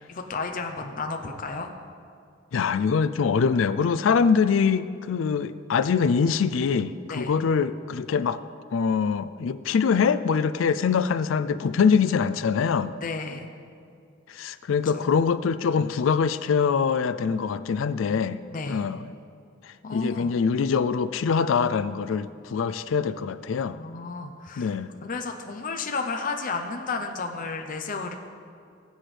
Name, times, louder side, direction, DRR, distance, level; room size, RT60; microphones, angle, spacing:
voice 1, 0.1-1.7 7.1-7.3 13.0-13.5 14.9-15.1 18.5-18.9 19.8-20.3 23.7-24.7 25.0-28.1, left 4 dB, 45° left, 4 dB, 0.7 m, -32 dB
voice 2, 2.5-8.4 8.7-12.9 14.3-18.4 18.7-19.0 19.6-23.8 24.6-24.9, left 6 dB, 75° left, 13 dB, 0.4 m, -24 dB
19.0 x 7.9 x 3.3 m, 2.4 s
head